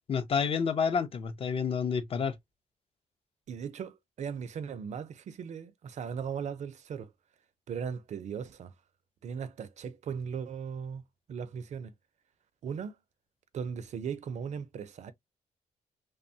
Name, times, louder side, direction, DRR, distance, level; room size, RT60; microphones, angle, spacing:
voice 1, 0.1-2.4, left 6 dB, 45° left, 0.5 m, -29 dB
voice 2, 3.5-7.1 7.7-8.7 9.2-11.0 11.3-11.9 12.6-13.0 13.5-15.1, right 7 dB, 60° right, 0.4 m, -38 dB
2.9 x 2.1 x 2.6 m
wide cardioid pair, 125°, 14 cm